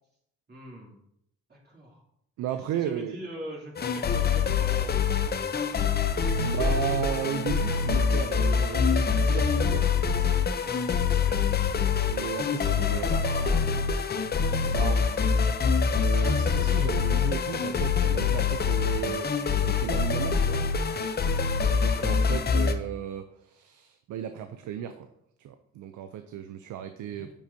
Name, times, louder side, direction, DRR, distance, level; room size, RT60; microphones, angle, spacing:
voice 1, 0.5-1.0 1.5-2.0 2.7-4.9 6.4-6.8 11.1-11.4 12.8-13.6 14.6-15.0 21.8-22.1 27.0-27.3, right 1 dB, 35° right, -4 dB, 2.8 m, -43 dB
voice 2, 2.4-3.2 5.6-9.9 12.1-13.2 14.7-15.0 15.9-20.6 21.3-25.1 25.4-27.3, right 10 dB, 80° right, 8 dB, 0.5 m, -35 dB
sound 1, 3.8-22.7, left 6 dB, 35° left, 0.6 m, -25 dB
8.5 x 5.2 x 2.7 m, 0.75 s
cardioid pair, 90°, 30 cm